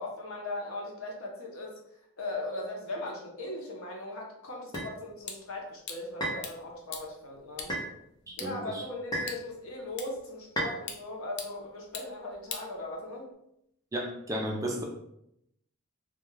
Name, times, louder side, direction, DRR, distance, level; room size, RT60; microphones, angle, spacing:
voice 1, 0.0-1.8 2.2-7.8 8.4-13.3, left 2 dB, 85° left, 0 dB, 0.7 m, -38 dB
sound 1, 4.7-13.3, left 6 dB, 55° left, 0.4 m, -46 dB
sound 2, 4.7-4.9 6.2-6.5 7.7-7.9 9.1-9.4 10.6-10.8, right 1 dB, 20° left, 0.6 m, -32 dB
voice 2, 8.3-8.8 13.9-14.8, right 1 dB, 15° right, 0 dB, 0.4 m, -34 dB
2.3 x 2.2 x 3.1 m, 0.79 s
head